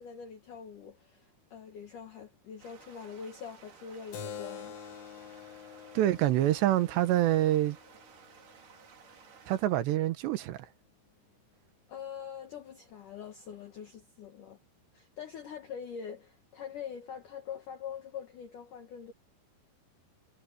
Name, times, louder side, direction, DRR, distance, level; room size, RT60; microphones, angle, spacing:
voice 1, 0.0-4.8 11.9-14.6 14.9-19.1, left 7 dB, 60° left, 2.5 m, -44 dB
sound 1, 2.6-9.6, right 6 dB, 50° right, 4.2 m, -56 dB
Keyboard (musical), 4.1-9.2, left 7 dB, 85° left, 4.8 m, -47 dB
voice 2, 5.9-7.8 9.5-10.6, right 13 dB, 75° right, 3.2 m, -26 dB
omnidirectional pair, 5.3 m